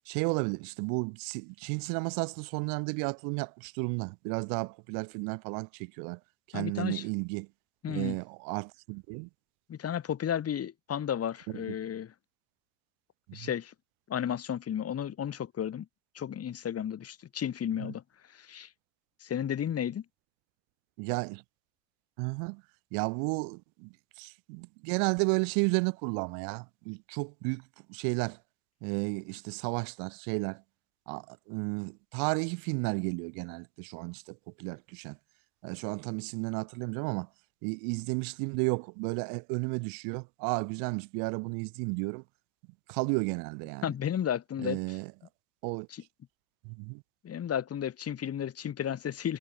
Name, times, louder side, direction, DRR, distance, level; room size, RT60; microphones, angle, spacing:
voice 1, 0.1-6.2 6.5-7.5 7.9-9.3 11.5-11.6 13.3-13.5 17.8-17.9 21.0-21.4 22.2-22.6 22.9-27.6 27.9-28.4 28.8-30.6 31.1-35.2 35.6-37.3 37.6-42.2 42.9-43.9 44.6-45.1 45.6-45.9 46.6-47.0, right 39 dB, 75° right, 7.2 m, -33 dB
voice 2, 6.5-7.0 7.8-8.2 9.7-12.1 13.3-13.7 14.1-15.9 16.2-18.0 18.3-18.7 19.2-20.0 43.8-44.8 45.9-46.0 47.2-49.4, left 9 dB, 45° left, 5.3 m, -33 dB
hypercardioid pair, 75°, 34 cm